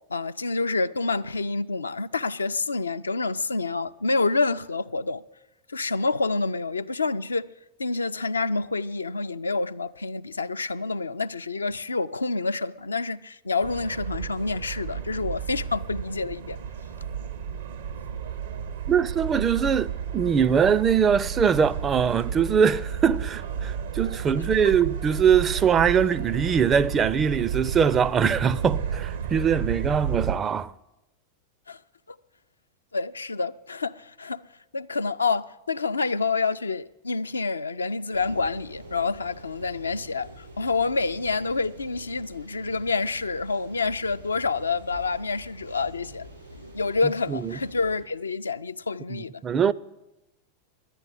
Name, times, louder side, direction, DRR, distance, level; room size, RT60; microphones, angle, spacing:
voice 1, 0.1-5.2 5.7-7.5 7.8-16.6 31.7-31.8 32.1-32.2 32.9-34.4 34.7-46.3 46.7-49.4, left 3 dB, 75° left, 0.4 m, -28 dB
sound 1, 13.6-30.4, right 7 dB, 60° right, 0.7 m, -32 dB
voice 2, 18.9-30.7 47.3-47.6 49.1-49.7, right 7 dB, 25° right, 0.4 m, -22 dB
sound 2, 38.1-48.0, equal, 85° right, 7.3 m, -46 dB
11.0 x 9.9 x 9.6 m
figure-of-eight pair, 90°, 0 cm